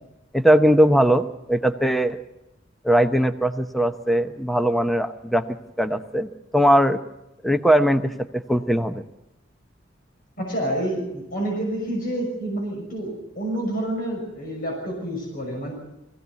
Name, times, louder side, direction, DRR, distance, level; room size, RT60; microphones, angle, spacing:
voice 1, 0.3-2.2 2.8-5.4 5.8-7.0 7.4-9.0, equal, ahead, 8 dB, 0.8 m, -20 dB
voice 2, 10.4-15.7, right 1 dB, 50° left, -1 dB, 6.2 m, -28 dB
21.5 x 16.5 x 8.3 m, 0.91 s
head